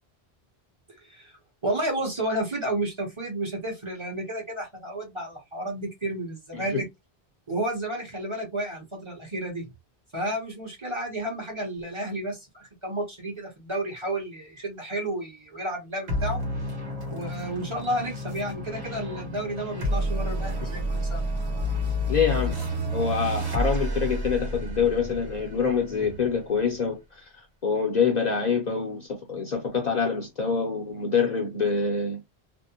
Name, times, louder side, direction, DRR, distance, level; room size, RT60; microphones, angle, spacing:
voice 1, 1.0-1.4 1.6-6.9 7.5-9.7 10.1-16.4 17.1-21.2, right 1 dB, 30° right, 0.9 m, -31 dB
sound 1, 16.1-26.9, equal, 80° right, 1.2 m, -30 dB
voice 2, 22.1-22.6 22.9-27.0 27.6-32.2, left 5 dB, 50° left, 0.6 m, -25 dB
2.5 x 2.0 x 2.7 m
omnidirectional pair, 1.1 m